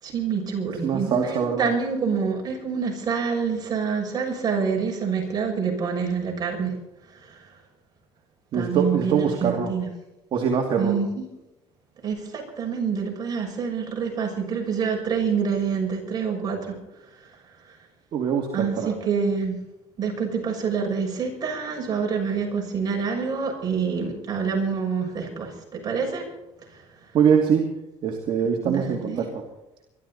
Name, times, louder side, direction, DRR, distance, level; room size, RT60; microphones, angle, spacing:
voice 1, 0.0-6.7 7.2-7.5 8.5-9.9 10.8-11.2 12.0-16.8 17.7-17.8 18.5-19.6 20.0-26.3 26.7-26.8 28.6-29.3, right 6 dB, 40° right, 0 dB, 6.6 m, -27 dB
voice 2, 0.8-1.7 8.5-9.7 10.3-11.0 18.1-18.9 27.1-27.7 28.0-29.2, right 7 dB, 55° right, 1 dB, 2.5 m, -23 dB
23.5 x 13.0 x 4.2 m, 0.96 s
cardioid pair, 110°, 11 cm